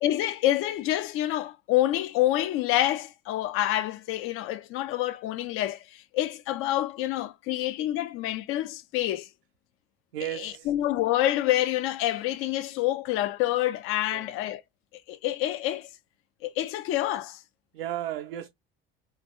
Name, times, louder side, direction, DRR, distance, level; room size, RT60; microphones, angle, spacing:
voice 1, 0.0-9.3 10.4-14.6 15.1-15.9 16.4-17.4, left 14 dB, 45° left, 0.5 m, -27 dB
voice 2, 10.1-10.7 14.1-14.3 17.7-18.5, right 12 dB, 75° right, 0.5 m, -34 dB
3.3 x 2.3 x 2.3 m
figure-of-eight pair, 65°, 29 cm